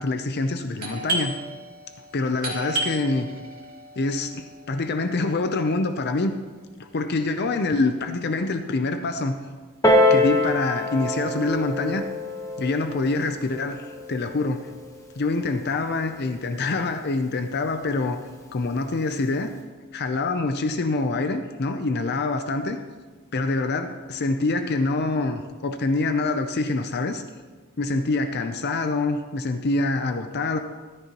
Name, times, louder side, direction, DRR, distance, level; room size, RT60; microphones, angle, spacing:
voice 1, 0.0-1.3 2.1-3.3 4.0-6.4 6.8-9.4 10.1-12.0 12.6-14.7 15.2-18.2 18.5-19.5 19.9-22.8 23.3-27.2 27.8-30.6, left 3 dB, 50° left, 7 dB, 0.6 m, -25 dB
Doorbell, 0.8-6.2, right 2 dB, 45° right, 2.5 m, -34 dB
Piano, 9.8-15.0 15.9-16.0, left 1 dB, 15° left, 1.1 m, -24 dB
14.0 x 12.5 x 3.0 m, 1.4 s
head